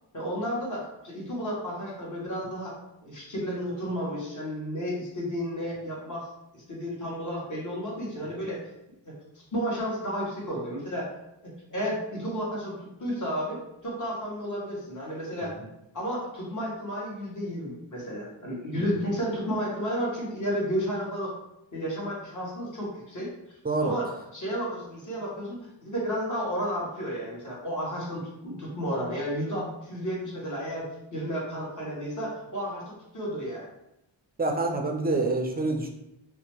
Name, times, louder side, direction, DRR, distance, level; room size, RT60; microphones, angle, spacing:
voice 1, 0.1-2.7 3.0-6.3 6.5-8.6 9.0-9.1 9.5-11.1 11.4-15.5 15.9-21.3 21.7-23.3 23.8-30.8 31.1-33.7, equal, 40° left, -5 dB, 1.3 m, -32 dB
voice 2, 23.6-23.9 34.4-35.9, right 2 dB, 20° right, 3 dB, 0.5 m, -27 dB
2.7 x 2.2 x 3.0 m, 0.84 s
cardioid pair, 50°, 46 cm